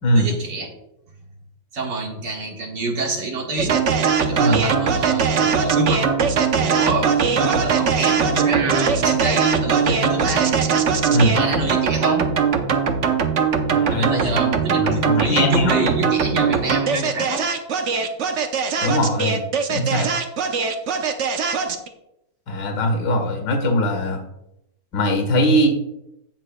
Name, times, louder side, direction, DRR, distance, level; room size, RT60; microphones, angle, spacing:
voice 1, 0.1-0.7 1.7-3.8 4.3-6.1 6.6-10.9 11.3-12.3 13.9-17.5, right 2 dB, 80° right, -1 dB, 2.4 m, -27 dB
sound 1, 3.6-21.9, right 6 dB, 55° right, 0.9 m, -20 dB
voice 2, 4.4-4.7 11.1-11.4 13.7-15.9 18.8-20.1 22.5-24.2 24.9-25.7, equal, 70° left, 3 dB, 2.2 m, -21 dB
16.0 x 6.3 x 2.3 m, 0.84 s
omnidirectional pair, 1.9 m